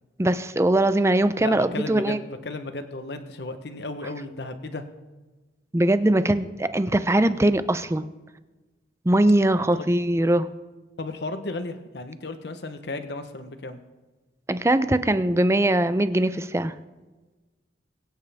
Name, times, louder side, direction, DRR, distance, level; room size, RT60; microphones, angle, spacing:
voice 1, 0.2-2.2 5.7-8.0 9.1-10.5 14.5-16.7, right 1 dB, 15° right, 12 dB, 0.5 m, -21 dB
voice 2, 1.4-4.8 9.7-9.8 11.0-13.8, left 2 dB, 70° left, 9 dB, 1.0 m, -34 dB
22.5 x 9.3 x 3.5 m, 1.2 s
head